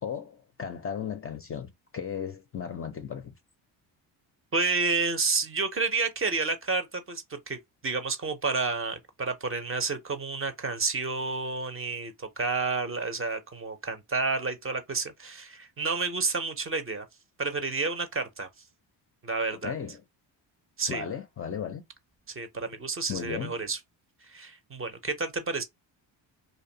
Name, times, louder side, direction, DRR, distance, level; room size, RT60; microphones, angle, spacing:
voice 1, 0.0-3.3 19.5-20.0 20.9-21.8 23.1-23.6, left 7 dB, 30° left, 0.4 m, -36 dB
voice 2, 4.5-7.6 7.8-17.1 17.4-18.5 19.2-19.7 20.8-21.1 22.3-23.8 24.2-25.6, right 4 dB, 30° right, 0.5 m, -30 dB
2.5 x 2.2 x 2.6 m
cardioid pair, 75°, 47 cm